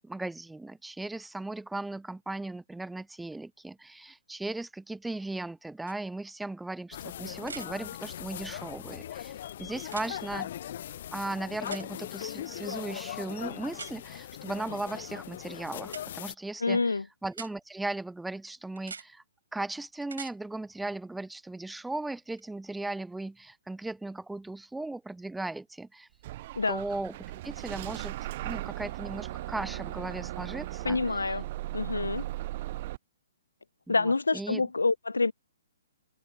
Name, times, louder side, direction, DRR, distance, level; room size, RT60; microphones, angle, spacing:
voice 1, 0.0-9.3 9.6-10.5 11.1-19.2 19.5-26.1 26.7-27.2 27.4-28.2 28.4-31.3 33.9-34.7, right 2 dB, 5° right, 0.5 m, -37 dB
sound 1, 5.9-6.0 7.4-7.7 9.8-10.1 11.7-11.9 13.7-13.9 15.9-16.0 17.3-17.5 18.8-19.1 20.0-20.3 22.4-22.5, right 5 dB, 65° right, 5.5 m, -42 dB
sound 2, 6.9-16.4, left 11 dB, 45° left, 0.9 m, -40 dB
voice 2, 16.6-17.0 26.6-26.8 30.8-31.4 31.7-32.2 33.9-35.3, left 3 dB, 70° left, 0.7 m, -27 dB
Bus / Engine starting, 26.2-33.0, right 16 dB, 40° right, 1.4 m, -37 dB
figure-of-eight pair, 125°, 0 cm